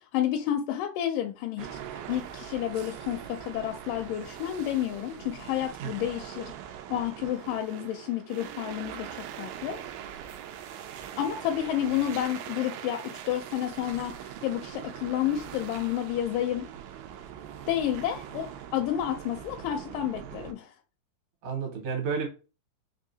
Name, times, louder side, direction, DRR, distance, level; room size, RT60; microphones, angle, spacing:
voice 1, 0.1-1.8 2.1-6.5 6.9-9.8 11.2-14.1 14.4-16.7 17.7-20.7, left 11 dB, 85° left, 2.1 m, -30 dB
sound 1, 1.6-20.5, right 9 dB, 90° right, 2.2 m, -42 dB
voice 2, 21.4-22.3, right 6 dB, 70° right, 2.5 m, -32 dB
5.5 x 2.4 x 2.7 m
omnidirectional pair, 3.8 m